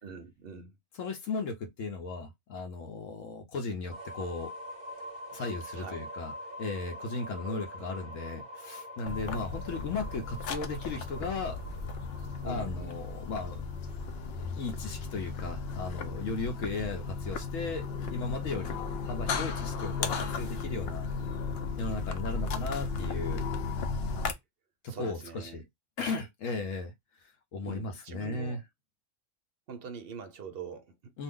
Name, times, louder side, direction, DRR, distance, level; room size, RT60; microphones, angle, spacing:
voice 1, 0.0-0.7 5.7-6.0 7.5-7.6 12.4-12.9 24.9-25.6 27.6-28.6 29.7-31.1, right 5 dB, 60° right, 0.7 m, -43 dB
voice 2, 1.0-4.5 5.3-6.3 6.6-11.6 12.4-13.6 14.4-21.1 21.8-23.4 24.8-25.6 26.0-28.6 31.1-31.2, left 3 dB, 80° left, 1.0 m, -36 dB
sound 1, 3.9-15.7, equal, 25° right, 0.8 m, -46 dB
sound 2, 9.1-24.3, left 4 dB, 60° left, 0.7 m, -35 dB
2.6 x 2.3 x 3.5 m
omnidirectional pair, 1.3 m